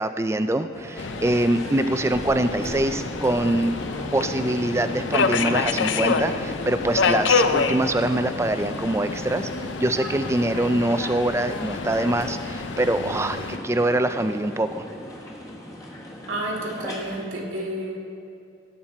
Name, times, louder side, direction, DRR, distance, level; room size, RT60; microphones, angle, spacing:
voice 1, 0.0-3.7 4.1-9.5 9.8-14.9, right 1 dB, 15° right, 9 dB, 0.4 m, -24 dB
sound 1, 0.7-17.3, equal, 15° left, 1.4 m, -37 dB
Subway metro underground, 1.0-13.6, left 4 dB, 65° left, 0.5 m, -28 dB
sound 2, 2.1-4.3 4.7-5.0 5.4-7.1, equal, 45° left, 2.7 m, -43 dB
voice 2, 16.3-18.0, right 1 dB, 85° right, -2 dB, 2.1 m, -30 dB
17.0 x 8.8 x 4.3 m, 2.5 s
head